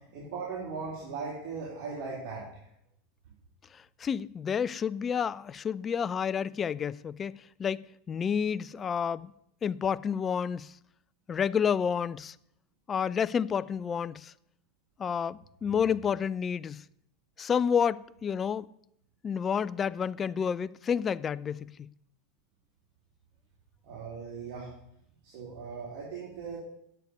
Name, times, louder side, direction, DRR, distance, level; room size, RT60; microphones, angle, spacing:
voice 1, 0.1-2.4 23.8-24.7 25.2-26.6, right 5 dB, 60° right, 3.8 m, -38 dB
voice 2, 3.7-7.3 7.6-9.3 9.6-10.7 11.3-12.4 12.9-14.3 15.0-16.8 17.4-18.7 19.2-21.7, left 7 dB, 30° left, 0.4 m, -30 dB
9.6 x 6.9 x 8.1 m
hypercardioid pair, 100°, 0 cm